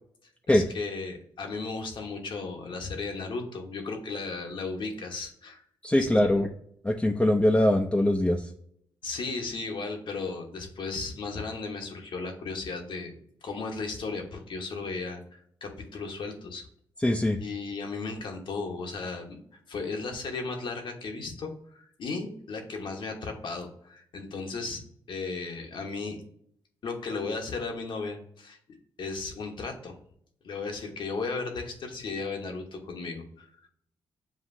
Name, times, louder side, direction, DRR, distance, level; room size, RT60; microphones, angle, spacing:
voice 1, 0.5-5.6 6.0-6.1 9.0-13.1 13.4-16.7 17.4-19.4 19.7-24.8 25.1-26.2 26.8-28.6 29.0-29.9 30.4-33.7, left 4 dB, 65° left, 3 dB, 1.0 m, -35 dB
voice 2, 5.8-6.5 6.8-8.5 17.0-17.4, left 1 dB, 10° left, 2 dB, 0.5 m, -22 dB
7.3 x 2.4 x 2.6 m, 0.67 s
supercardioid pair, 55°, 9 cm